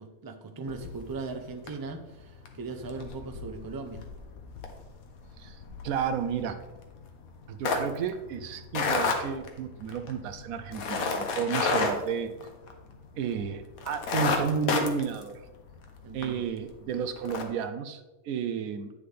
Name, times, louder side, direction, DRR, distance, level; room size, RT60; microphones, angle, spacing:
voice 1, 0.0-4.0 16.0-16.5, right 3 dB, 35° right, 6 dB, 0.3 m, -39 dB
sound 1, 0.7-1.3 1.7-1.9 2.3-13.0 13.4-13.5 13.8-16.3 16.7-16.8 17.2-17.4, left 4 dB, 80° left, 1.4 m, -31 dB
voice 2, 5.4-6.6 7.5-12.3 13.2-15.5 16.1-18.9, right 7 dB, 85° right, 9 dB, 1.0 m, -32 dB
9.3 x 6.7 x 3.4 m, 1.1 s
omnidirectional pair, 1.5 m